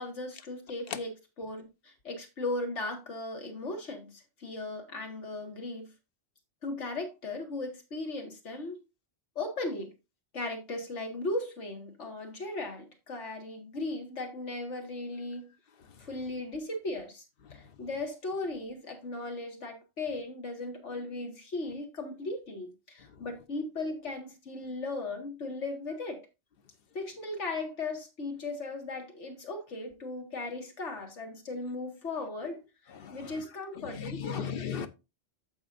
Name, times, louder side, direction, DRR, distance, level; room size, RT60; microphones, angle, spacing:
voice 1, 0.0-5.9 6.6-8.8 9.4-9.9 10.3-15.5 16.0-17.2 17.5-26.3 26.9-32.6 33.1-34.5, left 2 dB, 90° left, 2.1 m, -37 dB
voice 2, 34.0-34.9, left 7 dB, 55° left, 0.9 m, -35 dB
14.5 x 5.2 x 2.5 m
omnidirectional pair, 1.2 m